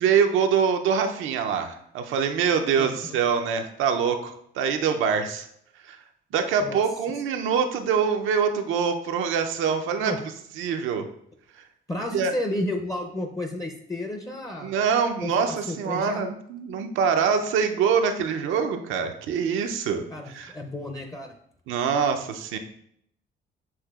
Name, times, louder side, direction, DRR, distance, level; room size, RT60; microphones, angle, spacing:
voice 1, 0.0-5.5 5.8-6.0 6.3-10.1 10.6-11.1 12.1-12.3 14.6-20.0 20.3-20.5 21.7-22.6, right 6 dB, 85° right, 6 dB, 0.5 m, -24 dB
voice 2, 2.8-3.2 6.6-6.8 10.0-10.2 11.9-14.7 15.2-16.2 20.1-21.3, left 1 dB, 15° left, 3 dB, 0.5 m, -32 dB
7.0 x 2.9 x 2.3 m, 0.70 s
cardioid pair, 90°, 20 cm